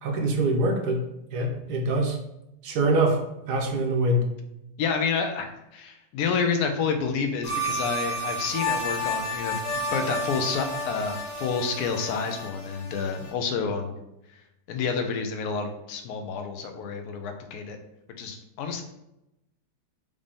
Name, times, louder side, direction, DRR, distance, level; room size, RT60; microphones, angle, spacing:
voice 1, 0.0-1.0 1.3-2.2 2.6-3.2 3.5-4.2, right 1 dB, 75° right, 2 dB, 1.2 m, -24 dB
voice 2, 4.8-13.9 14.7-17.8 18.2-18.8, left 5 dB, 70° left, 6 dB, 1.1 m, -29 dB
sound 1, 7.4-13.3, equal, 90° left, 1.6 m, -31 dB
5.1 x 2.6 x 3.4 m, 0.88 s
omnidirectional pair, 1.8 m